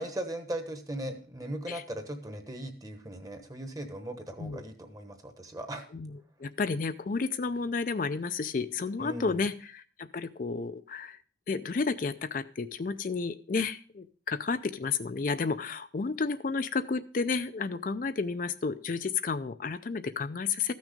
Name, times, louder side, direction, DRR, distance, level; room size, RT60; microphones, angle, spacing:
voice 1, 0.0-5.9 9.0-9.5, right 1 dB, 20° right, 7 dB, 1.1 m, -38 dB
voice 2, 6.4-11.2 11.5-20.7, left 4 dB, 45° left, 10 dB, 0.4 m, -31 dB
14.0 x 6.2 x 5.1 m, 0.43 s
head